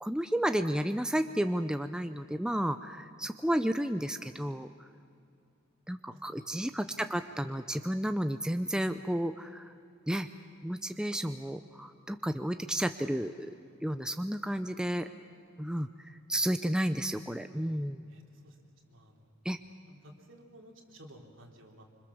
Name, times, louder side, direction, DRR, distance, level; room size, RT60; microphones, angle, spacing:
voice 1, 0.0-4.9 5.9-9.7 10.1-10.3 10.6-13.5 13.8-15.1 15.6-18.0 19.4-19.6, equal, 5° right, 8 dB, 0.6 m, -32 dB
voice 2, 6.1-6.6 18.1-18.6 18.9-19.6 19.9-21.8, equal, 70° right, 1 dB, 3.5 m, -55 dB
26.0 x 25.5 x 7.2 m, 2.4 s
head